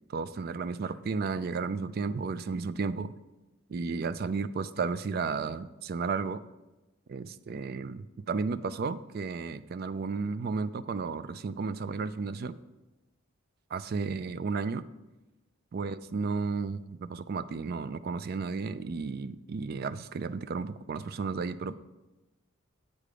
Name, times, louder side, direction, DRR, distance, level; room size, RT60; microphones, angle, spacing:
voice 1, 0.1-3.1 3.7-6.4 7.1-12.6 13.7-14.8 15.7-21.7, right 4 dB, 45° right, 14 dB, 0.3 m, -33 dB
8.4 x 5.0 x 6.7 m, 1.1 s
head